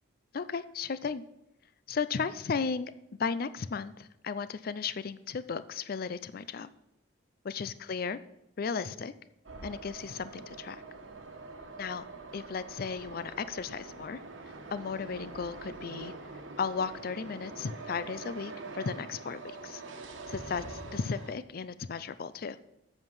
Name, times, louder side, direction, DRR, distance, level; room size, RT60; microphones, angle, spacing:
voice 1, 0.3-1.2 1.9-2.9 3.2-6.7 7.4-8.2 8.6-9.1 9.6-10.8 11.8-12.0 12.3-14.2 14.7-16.1 16.6-19.8 20.3-22.6, left 5 dB, 50° left, 15 dB, 0.4 m, -35 dB
sound 1, 9.4-21.3, right 3 dB, 90° right, 1.2 m, -45 dB
7.9 x 7.2 x 5.5 m, 0.86 s
head